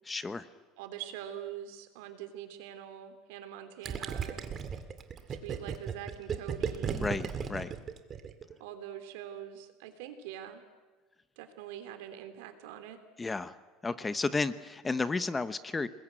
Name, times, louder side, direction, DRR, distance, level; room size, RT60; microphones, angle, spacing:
voice 1, 0.1-0.5 6.9-7.7 13.2-13.5 13.8-15.9, left 3 dB, 15° left, 13 dB, 1.0 m, -32 dB
voice 2, 0.8-4.5 5.3-7.1 8.6-10.6 11.4-13.0, right 10 dB, 85° right, 8 dB, 3.4 m, -44 dB
Gurgling, 3.8-8.5, right 7 dB, 30° right, 2.1 m, -35 dB
30.0 x 21.0 x 9.1 m, 1.3 s
cardioid pair, 150°, 0 cm